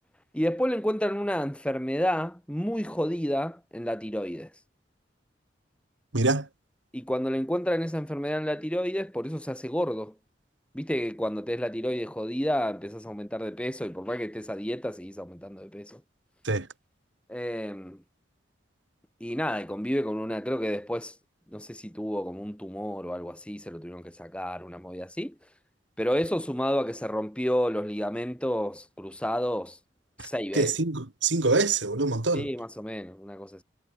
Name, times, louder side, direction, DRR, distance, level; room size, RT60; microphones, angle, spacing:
voice 1, 0.3-4.5 6.9-10.1 10.7-16.0 17.3-18.0 19.2-21.1 21.5-25.3 26.0-29.8 30.2-30.7 32.3-33.6, equal, 5° left, 2.6 m, -30 dB
voice 2, 6.1-6.4 16.5-16.6 30.5-32.5, right 3 dB, 80° right, 2.0 m, -25 dB
head